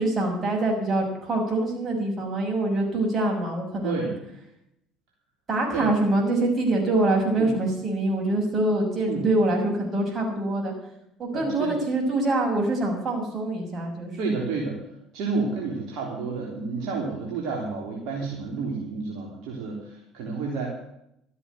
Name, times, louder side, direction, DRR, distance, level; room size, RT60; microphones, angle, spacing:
voice 1, 0.0-4.0 5.5-10.7 11.2-14.1, right 2 dB, 40° right, 2 dB, 6.5 m, -24 dB
voice 2, 3.8-4.1 5.7-5.9 7.4-7.5 9.1-9.2 11.3-11.8 14.2-14.8 15.1-20.7, right 4 dB, 65° right, -1 dB, 3.5 m, -30 dB
13.5 x 8.3 x 9.4 m, 0.78 s
hypercardioid pair, 65°, 0 cm